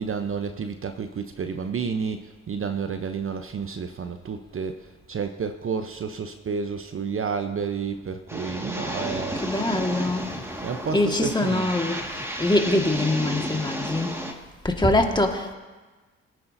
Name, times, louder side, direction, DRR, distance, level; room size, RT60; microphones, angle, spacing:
voice 1, 0.0-9.5 10.6-11.8, right 6 dB, 40° right, 0.8 m, -30 dB
sound 1, 8.3-14.3, equal, 5° right, 1.9 m, -32 dB
voice 2, 9.4-10.4 10.9-14.3 14.6-15.5, left 2 dB, 15° left, 1.8 m, -24 dB
23.0 x 9.5 x 2.7 m
hypercardioid pair, 50°, 35 cm